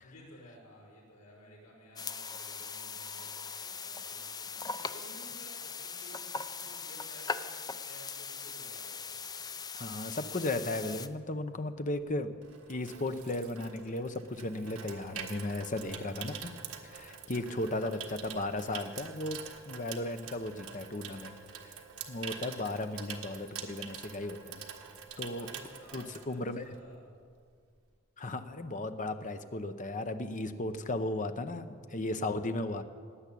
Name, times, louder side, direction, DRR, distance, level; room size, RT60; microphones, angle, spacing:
voice 1, 0.0-7.6 7.9-9.6 25.2-27.1, equal, 85° left, -3 dB, 5.4 m, -55 dB
sound 1, 2.0-11.1, left 5 dB, 20° left, 0.4 m, -40 dB
voice 2, 9.7-12.3 12.7-16.5 16.8-21.4 21.6-21.7 22.1-24.6 25.2-25.5 25.9-26.7 28.2-32.8, left 2 dB, 35° left, 9 dB, 0.8 m, -35 dB
Water tap faucet / Sink (filling or washing), 12.0-26.9 27.2-27.5, right 7 dB, 70° right, 1.5 m, -46 dB
17.0 x 9.7 x 8.5 m, 2.1 s
head